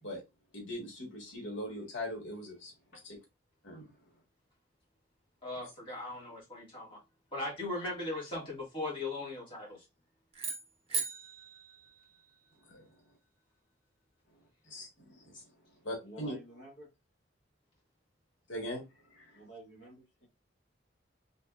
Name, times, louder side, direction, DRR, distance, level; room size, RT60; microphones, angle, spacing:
voice 1, 0.5-2.7 3.1-3.2 3.6-3.9 12.7-12.9 14.7-15.4 15.8-16.3 18.5-18.8 19.1-19.4, left 1 dB, 85° left, 1.7 m, -41 dB
voice 2, 5.4-7.0 7.3-9.8, left 2 dB, 30° left, 2.1 m, -38 dB
sound 1, 10.3-12.7, right 4 dB, 35° right, 1.0 m, -39 dB
voice 3, 16.0-16.9 19.3-20.3, right 1 dB, 65° left, 1.6 m, -51 dB
4.0 x 3.3 x 2.5 m
head